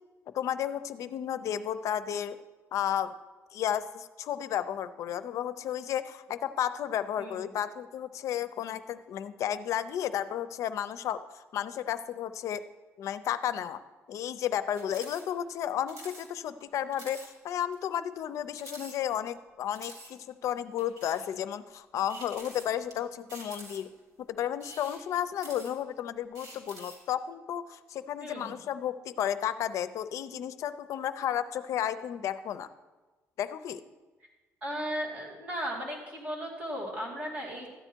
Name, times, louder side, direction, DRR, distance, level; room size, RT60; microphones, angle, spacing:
voice 1, 0.3-2.4 2.7-3.1 3.5-12.6 13.0-13.8 14.1-23.9 24.2-32.7 33.4-33.8, left 10 dB, 65° left, 13 dB, 0.5 m, -33 dB
voice 2, 7.2-7.5 28.2-28.5 34.6-37.7, equal, 25° right, -3 dB, 2.6 m, -36 dB
sound 1, 14.7-15.2 15.5-15.6 15.9-16.3 16.6-16.7 16.9-17.3 17.7-17.8 18.5-19.4 19.7-20.1 20.8-21.3 22.1-22.9 23.3-24.0 24.5-25.9 26.3-27.1, right 1 dB, 80° right, 3.1 m, -47 dB
13.5 x 9.1 x 4.5 m, 1.2 s
cardioid pair, 155°, 6 cm